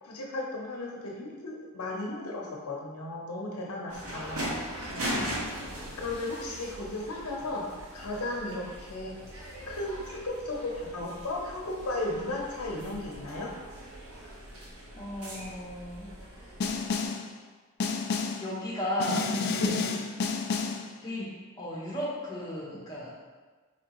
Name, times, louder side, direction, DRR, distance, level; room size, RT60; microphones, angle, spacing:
voice 1, 0.0-4.6 6.0-7.6 7.9-9.1 9.7-13.5 19.6-19.8, left 2 dB, 90° left, -1 dB, 0.8 m, -35 dB
sound 1, 3.9-17.0, equal, 85° right, 1.2 m, -40 dB
voice 2, 4.9-5.3 14.9-16.1 18.4-19.3 21.0-23.1, left 1 dB, 20° left, -6 dB, 1.0 m, -35 dB
Snare drum, 16.6-17.3 17.8-18.5 19.0-20.9, left 4 dB, 50° left, 0.3 m, -30 dB
4.7 x 3.5 x 2.9 m, 1.4 s
head